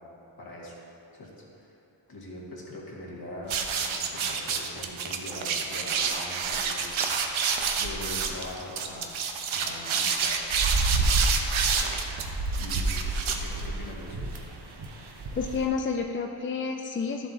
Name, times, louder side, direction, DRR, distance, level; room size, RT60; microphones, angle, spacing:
voice 1, 0.4-0.7 1.2-1.7 2.1-7.0 7.8-9.2 9.5-10.4 10.9-11.3 11.7-12.2 12.6-14.2, left 1 dB, 50° left, -4 dB, 1.9 m, -42 dB
sound 1, 3.5-13.9, right 4 dB, 80° right, 0.8 m, -27 dB
sound 2, 10.6-15.7, right 2 dB, 55° right, 1.0 m, -42 dB
voice 2, 15.4-17.3, left 5 dB, 30° left, 2 dB, 0.4 m, -30 dB
12.0 x 7.4 x 2.8 m, 2.9 s
cardioid pair, 100°, 47 cm